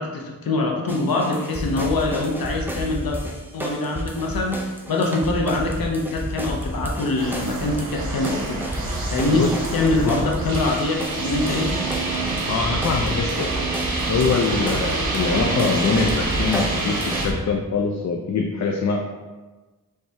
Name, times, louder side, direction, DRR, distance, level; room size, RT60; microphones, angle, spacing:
voice 1, 0.0-3.2 3.5-8.6 9.1-11.7 13.1-13.2, left 2 dB, 85° left, 0 dB, 0.7 m, -24 dB
sound 1, 0.9-17.3, right 1 dB, 5° right, 0.5 m, -31 dB
sound 2, 7.2-17.2, right 3 dB, 90° right, 0.9 m, -27 dB
voice 2, 12.5-13.5 14.1-19.0, left 5 dB, 55° left, 2 dB, 0.5 m, -23 dB
4.6 x 3.3 x 2.7 m, 1.2 s
wide cardioid pair, 75°, 34 cm